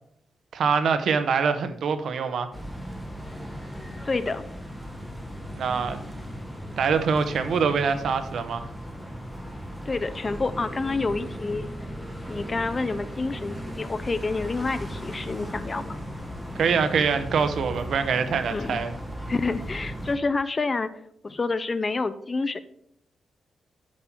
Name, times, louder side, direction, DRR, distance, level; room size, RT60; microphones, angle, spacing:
voice 1, 0.5-2.5 5.5-6.0 6.8-8.7 16.5-18.9, right 6 dB, 70° right, 10 dB, 0.8 m, -24 dB
sound 1, 2.5-20.2, equal, ahead, 1.2 m, -37 dB
voice 2, 4.0-4.4 9.9-11.7 12.3-16.0 18.5-18.8 19.3-20.9 21.2-22.6, left 3 dB, 25° left, 13 dB, 0.4 m, -28 dB
7.4 x 5.9 x 4.6 m, 0.73 s
wide cardioid pair, 145°, 0 cm